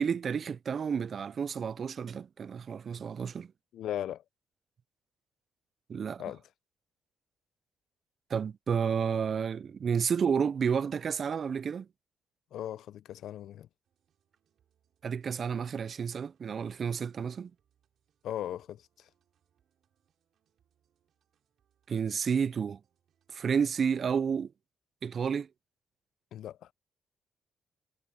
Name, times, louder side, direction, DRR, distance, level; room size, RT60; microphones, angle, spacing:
voice 1, 0.0-3.5 5.9-6.2 8.3-11.9 15.0-17.5 21.9-22.8 23.3-24.5 25.0-25.5, right 6 dB, 50° right, 0.3 m, -31 dB
voice 2, 3.7-4.2 6.2-6.4 12.5-13.7 18.2-19.1 26.3-26.7, left 11 dB, 75° left, 0.5 m, -38 dB
sound 1, 13.8-23.8, right 9 dB, 65° right, 5.9 m, -77 dB
cardioid pair, 90°, 0 cm